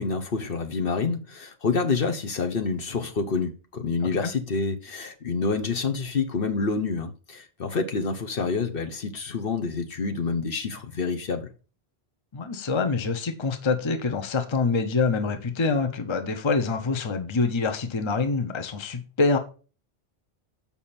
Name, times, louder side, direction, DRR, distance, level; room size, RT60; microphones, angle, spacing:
voice 1, 0.0-11.5, left 4 dB, 60° left, 1.2 m, -28 dB
voice 2, 12.3-19.4, left 4 dB, 30° left, 0.8 m, -25 dB
7.1 x 5.5 x 4.3 m
omnidirectional pair, 1.1 m